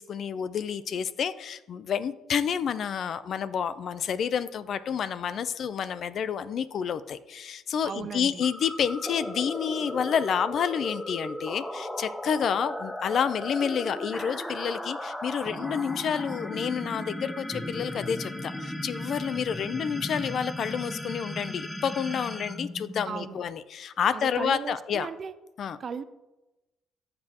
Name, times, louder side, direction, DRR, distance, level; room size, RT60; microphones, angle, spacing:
voice 1, 0.0-25.1 25.6-25.8, left 7 dB, 55° left, 15 dB, 0.5 m, -29 dB
voice 2, 7.8-8.5 23.1-23.4 24.1-25.3 25.8-26.0, right 6 dB, 45° right, 13 dB, 0.6 m, -36 dB
sound 1, 8.4-23.5, left 1 dB, 10° left, 0.8 m, -36 dB
14.5 x 7.6 x 2.9 m, 1.0 s
cardioid pair, 100°, 0 cm